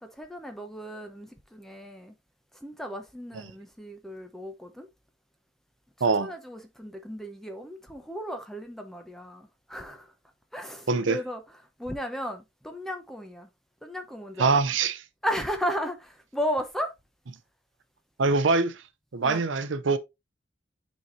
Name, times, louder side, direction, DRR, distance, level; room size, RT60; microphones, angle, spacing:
voice 1, 0.0-2.1 2.5-4.9 6.2-10.1 10.5-13.5 13.8-14.6 15.2-16.9 19.2-19.4, equal, ahead, 0.8 m, -35 dB
voice 2, 6.0-6.3 10.9-11.2 14.4-15.0 18.2-18.8 19.1-20.0, right 4 dB, 85° right, 0.6 m, -23 dB
9.3 x 4.2 x 2.6 m
head